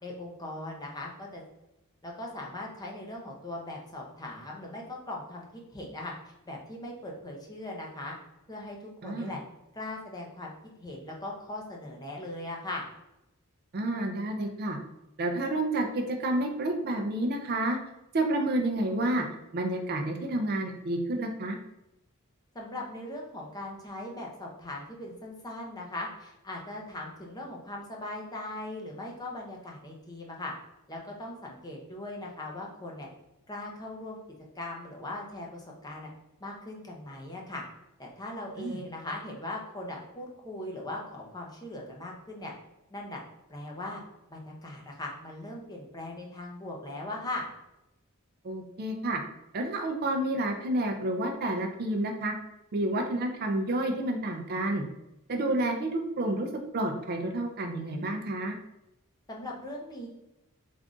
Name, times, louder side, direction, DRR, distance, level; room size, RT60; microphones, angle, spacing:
voice 1, 0.0-1.4 2.0-8.1 8.5-9.4 9.7-10.5 10.8-12.8 22.5-30.5 30.9-33.1 33.5-34.2 34.5-36.1 36.4-37.6 38.0-42.5 42.9-43.2 43.5-44.0 44.3-47.5 59.3-60.1, left 1 dB, 15° left, -1 dB, 0.6 m, -39 dB
voice 2, 9.0-9.3 13.7-14.8 15.2-17.8 18.1-19.3 19.5-21.6 38.6-38.8 48.4-49.2 49.5-52.3 52.7-54.8 55.3-58.5, right 1 dB, 45° right, 4 dB, 0.4 m, -29 dB
3.5 x 2.4 x 3.7 m, 0.90 s
head